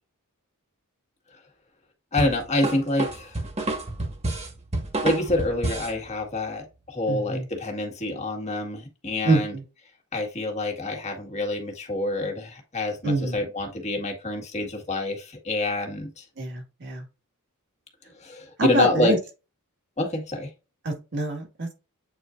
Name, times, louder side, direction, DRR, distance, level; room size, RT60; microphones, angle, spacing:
voice 1, 2.1-3.4 5.0-9.5 10.1-16.2 18.2-19.2 20.0-20.5, left 2 dB, 30° left, 1.8 m, -27 dB
sound 1, 2.2-6.0, right 2 dB, 30° right, 1.8 m, -29 dB
voice 2, 7.1-7.5 9.2-9.6 13.0-13.4 16.4-17.0 18.6-19.2 20.9-21.7, right 2 dB, 50° right, 2.0 m, -25 dB
8.2 x 4.5 x 2.6 m
head